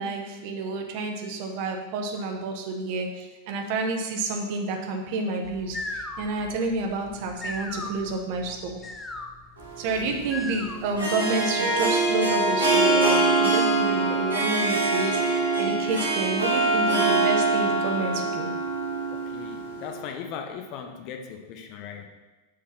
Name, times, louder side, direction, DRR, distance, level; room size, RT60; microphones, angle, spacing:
voice 1, 0.0-8.8 9.8-18.5, right 3 dB, 45° right, 3 dB, 0.9 m, -29 dB
sound 1, 5.4-11.0, left 2 dB, 15° left, 0.5 m, -38 dB
Harp, 9.6-20.0, right 3 dB, 85° right, 1.9 m, -24 dB
voice 2, 19.3-22.1, left 7 dB, 40° left, 4 dB, 0.8 m, -38 dB
6.6 x 3.7 x 5.7 m, 1.2 s
figure-of-eight pair, 90°, 0 cm